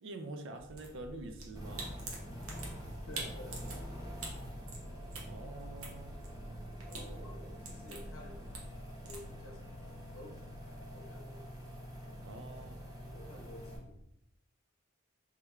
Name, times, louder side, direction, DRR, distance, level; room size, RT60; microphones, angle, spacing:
voice 1, 0.0-1.9 5.2-6.1 12.2-12.8, right 2 dB, 60° right, 6 dB, 0.4 m, -46 dB
sound 1, 0.6-9.3, right 2 dB, 90° right, 0.8 m, -47 dB
sound 2, 1.5-13.8, equal, 15° right, 0.6 m, -46 dB
voice 2, 3.1-4.1 6.9-8.6 9.0-11.6 13.1-14.0, left 1 dB, 80° left, 1 dB, 0.7 m, -52 dB
sound 3, 4.2-14.1, equal, 30° left, 0.7 m, -56 dB
3.3 x 3.1 x 2.3 m, 0.81 s
head